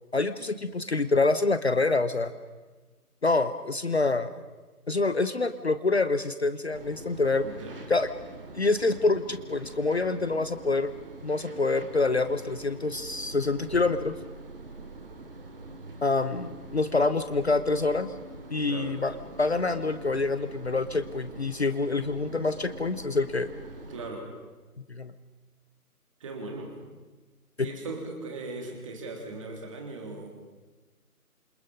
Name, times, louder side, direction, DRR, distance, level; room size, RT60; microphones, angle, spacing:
voice 1, 0.1-2.3 3.2-4.3 4.9-7.5 7.9-8.1 8.5-10.9 11.2-14.2 16.0-18.1 18.5-23.5 24.9-25.1 27.6-27.7, left 3 dB, 45° left, 12 dB, 1.0 m, -26 dB
sound 1, 6.7-24.1, right 2 dB, 35° right, 2.7 m, -44 dB
voice 2, 7.4-7.8 18.6-19.0 23.9-24.3 26.2-26.8 27.6-30.3, right 3 dB, 20° right, 2 dB, 3.3 m, -38 dB
27.5 x 27.5 x 5.3 m, 1.2 s
figure-of-eight pair, 155°, 45 cm